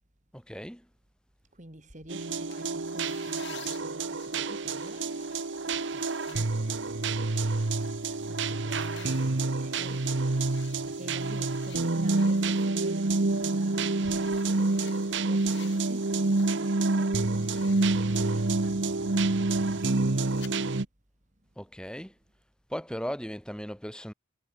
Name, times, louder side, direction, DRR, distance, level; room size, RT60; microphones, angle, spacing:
voice 1, 0.3-0.9 21.6-22.2 22.7-24.1, equal, 5° left, 7.2 m, -37 dB
voice 2, 1.6-7.5 8.2-20.7, right 1 dB, 35° right, 3.0 m, -49 dB
sound 1, 2.1-20.8, right 3 dB, 55° right, 1.0 m, -28 dB
sound 2, 2.5-16.7 17.1-20.5, left 11 dB, 55° left, 6.5 m, -54 dB
head